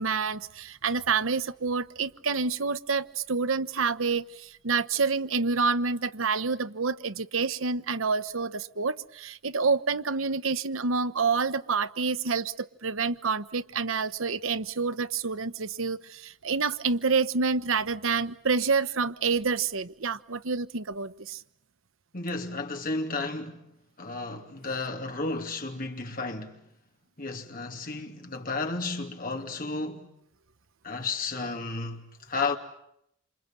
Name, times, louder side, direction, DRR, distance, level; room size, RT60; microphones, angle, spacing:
voice 1, 0.0-21.4, right 4 dB, 90° right, 1.0 m, -28 dB
voice 2, 22.1-23.7 24.0-26.6 27.2-30.1 30.8-32.6, left 3 dB, 45° left, 2.7 m, -33 dB
28.0 x 27.5 x 7.6 m
head